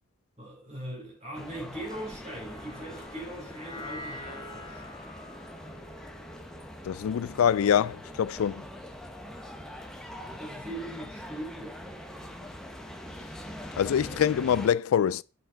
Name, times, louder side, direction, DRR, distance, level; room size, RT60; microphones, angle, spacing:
voice 1, 0.4-5.0 10.2-11.8, right 1 dB, 35° right, 4.8 m, -40 dB
sound 1, 1.3-14.7, left 1 dB, 5° left, 1.1 m, -43 dB
sound 2, 1.8-8.2, left 1 dB, 20° left, 1.5 m, -46 dB
voice 2, 6.8-8.6 13.8-15.2, left 8 dB, 80° left, 0.3 m, -25 dB
8.4 x 6.7 x 3.9 m
head